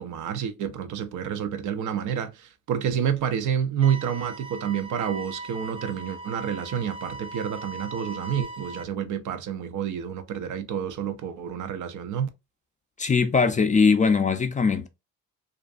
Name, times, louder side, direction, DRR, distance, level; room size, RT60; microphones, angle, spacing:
voice 1, 0.0-12.3, right 8 dB, 65° right, 0.5 m, -29 dB
sound 1, 3.8-8.8, right 2 dB, 20° right, 0.7 m, -39 dB
voice 2, 13.0-14.9, left 5 dB, 25° left, 0.4 m, -21 dB
2.5 x 2.2 x 2.4 m
supercardioid pair, 65°, 32 cm